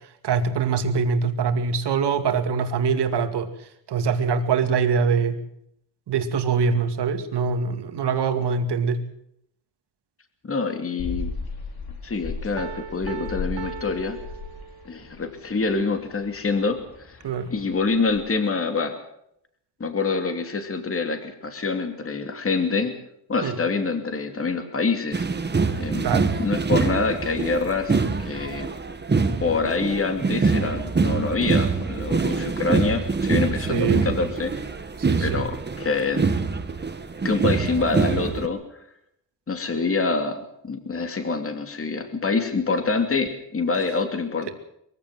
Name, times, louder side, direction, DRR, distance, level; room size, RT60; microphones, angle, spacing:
voice 1, 0.2-3.5 3.9-5.4 6.1-9.0 17.2-17.5 23.4-23.6 26.0-26.3 33.7-34.1 35.0-35.4, right 5 dB, 65° right, 7 dB, 2.5 m, -23 dB
voice 2, 10.4-11.3 12.0-14.2 14.8-17.2 17.5-18.9 19.8-22.9 23.3-25.2 25.8-26.1 26.4-28.7 29.4-34.5 35.2-36.2 37.2-38.6 39.5-44.5, left 4 dB, 30° left, 7 dB, 2.7 m, -26 dB
sound 1, 11.0-18.3, left 4 dB, 55° left, 4.4 m, -36 dB
Piano, 12.6-15.1, right 8 dB, 85° right, 1.6 m, -39 dB
sound 2, 25.1-38.5, right 4 dB, 25° right, 1.8 m, -25 dB
23.0 x 15.5 x 7.7 m, 0.76 s
cardioid pair, 125°, 43 cm